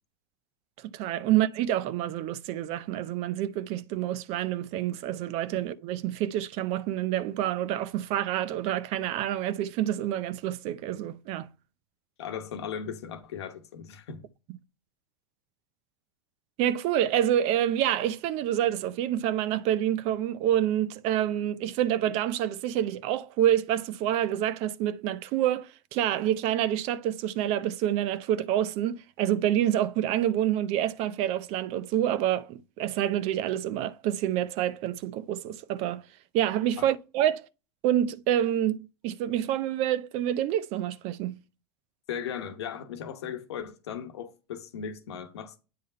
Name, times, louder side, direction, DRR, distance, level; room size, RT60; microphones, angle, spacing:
voice 1, 0.8-11.5 16.6-36.0 36.3-37.5 37.8-38.8 39.0-41.4, right 11 dB, 50° right, 0.5 m, -27 dB
voice 2, 12.2-14.2 36.8-36.9 42.1-45.6, left 8 dB, 90° left, 1.1 m, -37 dB
8.5 x 3.7 x 4.4 m
supercardioid pair, 115°, 13 cm